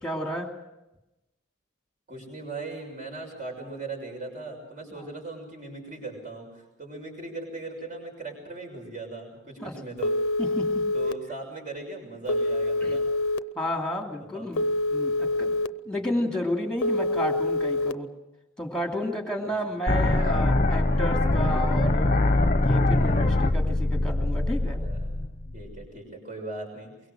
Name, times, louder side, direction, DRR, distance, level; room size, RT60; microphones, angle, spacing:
voice 1, 0.0-0.5 4.9-5.1 9.6-9.7 10.4-10.8 12.8-13.0 13.5-15.5 15.8-18.1 18.6-22.2 22.6-24.8, equal, 5° left, 3 dB, 2.7 m, -32 dB
voice 2, 2.1-10.1 10.9-13.1 14.3-14.5 19.4-19.7 20.9-21.3 22.9-23.2 24.8-25.2 25.5-26.9, right 3 dB, 35° right, 1 dB, 6.4 m, -39 dB
Telephone, 10.0-11.1 12.3-13.4 14.6-15.7 16.8-17.9, left 2 dB, 70° left, 0.7 m, -26 dB
sound 1, 19.9-25.8, left 2 dB, 30° left, 1.1 m, -23 dB
23.5 x 23.0 x 6.5 m, 0.97 s
head